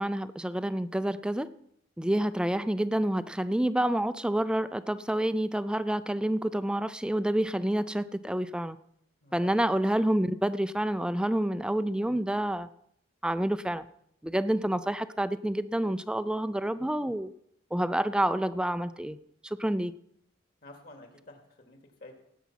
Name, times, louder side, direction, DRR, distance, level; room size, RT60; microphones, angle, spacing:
voice 1, 0.0-1.5 2.0-8.8 9.3-12.7 13.2-13.9 14.2-17.3 17.7-19.2 19.4-19.9, right 1 dB, 5° right, 14 dB, 0.4 m, -28 dB
voice 2, 9.2-9.6 20.6-22.1, left 2 dB, 55° left, 4 dB, 2.6 m, -50 dB
17.5 x 8.3 x 5.8 m, 0.72 s
head